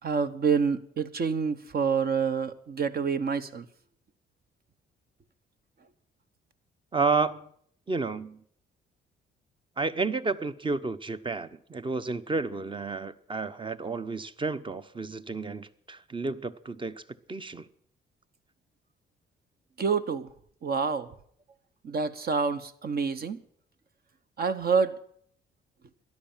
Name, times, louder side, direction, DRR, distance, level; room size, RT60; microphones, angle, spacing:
voice 1, 0.0-3.7 19.8-20.3 20.6-21.1 21.8-23.4 24.4-25.0, right 5 dB, 50° right, 1.3 m, -27 dB
voice 2, 6.9-7.5 7.9-8.4 9.8-17.0 17.3-17.7, right 4 dB, 25° right, 0.9 m, -31 dB
13.0 x 11.0 x 8.9 m
cardioid pair, 90°, 20 cm